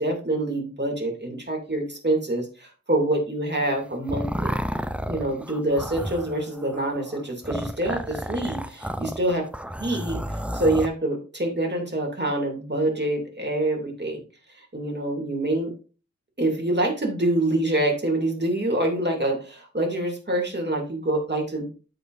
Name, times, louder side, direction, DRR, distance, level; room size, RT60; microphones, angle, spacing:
voice 1, 0.0-4.5 5.1-9.4 9.8-14.2 14.6-15.7 16.4-21.7, right 1 dB, 35° right, 1 dB, 2.6 m, -26 dB
sound 1, 3.6-10.9, equal, 5° right, 0.5 m, -32 dB
13.0 x 5.0 x 2.6 m, 0.36 s
wide cardioid pair, 55°, 30 cm